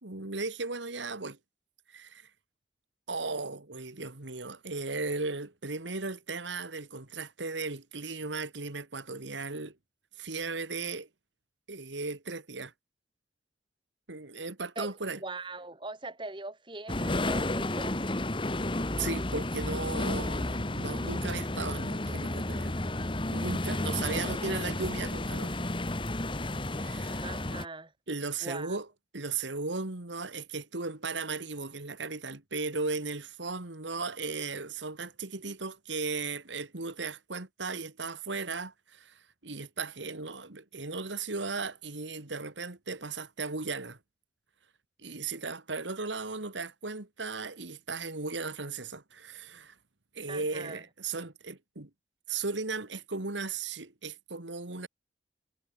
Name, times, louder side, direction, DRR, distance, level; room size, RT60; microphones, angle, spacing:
voice 1, 0.0-1.4 1.9-2.3 3.1-9.8 10.2-11.1 11.7-12.7 14.1-15.2 19.0-22.7 23.3-25.6 26.8-27.2 28.1-28.9 29.1-44.0 45.0-49.7 50.1-51.9 52.3-54.9, right 4 dB, 90° right, 2.2 m, -36 dB
voice 2, 15.2-18.0 27.2-27.9 28.4-28.8 50.3-50.8, right 2 dB, 25° right, 3.0 m, -41 dB
sound 1, 16.9-27.7, left 1 dB, 30° left, 1.6 m, -32 dB
head